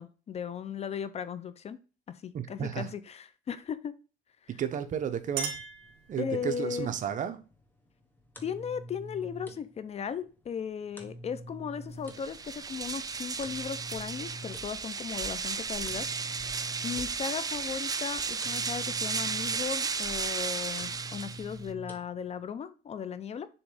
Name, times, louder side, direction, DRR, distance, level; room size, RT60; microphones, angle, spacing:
voice 1, 0.0-1.8 2.1-3.9 6.2-6.9 8.4-16.1 16.8-23.5, left 7 dB, 40° left, 0.5 m, -36 dB
voice 2, 2.3-2.9 4.6-5.5 6.1-7.4, right 8 dB, 50° right, 0.9 m, -32 dB
Chink clink, 4.8-6.7, right 7 dB, 70° right, 2.0 m, -39 dB
sound 1, 5.8-22.5, equal, 10° left, 1.2 m, -48 dB
sound 2, 12.0-21.7, right 5 dB, 20° right, 0.5 m, -34 dB
7.0 x 3.1 x 4.9 m
cardioid pair, 110°, 17 cm